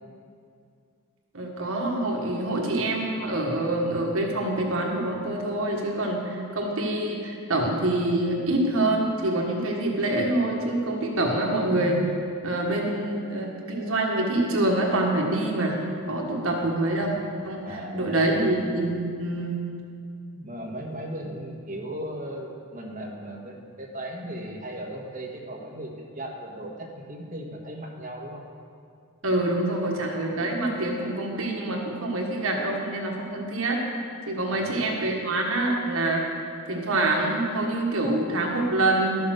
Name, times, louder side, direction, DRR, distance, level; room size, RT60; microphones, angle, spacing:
voice 1, 1.3-12.0 12.4-15.8 16.1-17.2 17.4-19.6 29.2-33.8 34.3-36.2 36.7-39.2, right 1 dB, 70° right, 0 dB, 1.6 m, -26 dB
voice 2, 16.4-16.7 17.6-18.5 20.3-28.4 34.5-34.8, right 1 dB, 35° right, -1 dB, 1.4 m, -37 dB
12.0 x 7.0 x 6.5 m, 2.3 s
head